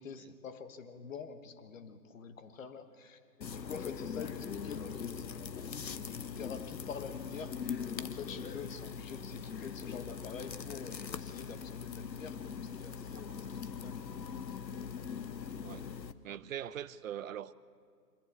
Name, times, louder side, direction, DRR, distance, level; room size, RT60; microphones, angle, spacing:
voice 1, 0.0-14.0, left 6 dB, 50° left, 1.6 m, -47 dB
sound 1, 3.4-16.1, left 6 dB, 85° left, 1.0 m, -41 dB
voice 2, 16.2-17.5, right 10 dB, 55° right, 0.7 m, -42 dB
24.5 x 15.5 x 8.1 m
hypercardioid pair, 145°, 50 cm